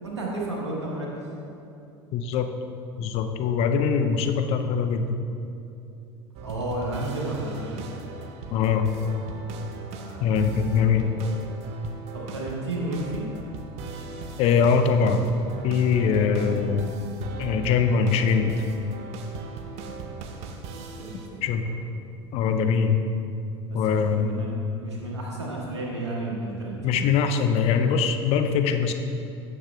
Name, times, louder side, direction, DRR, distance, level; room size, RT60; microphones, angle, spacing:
voice 1, 0.0-1.1 6.4-7.8 9.9-11.1 12.1-13.2 19.9-20.3 20.7-21.6 23.7-24.5 24.8-27.0, right 2 dB, 80° right, -3 dB, 1.4 m, -33 dB
voice 2, 2.1-2.5 3.0-5.2 8.5-8.9 10.2-11.1 14.4-15.3 15.6-16.9 17.4-18.5 21.4-21.7 22.3-23.0 23.7-24.5 26.8-28.9, left 6 dB, 45° left, 7 dB, 0.5 m, -22 dB
sound 1, 6.3-21.3, right 4 dB, 45° right, 0.6 m, -39 dB
9.9 x 6.6 x 2.3 m, 2.7 s
figure-of-eight pair, 75°, 14 cm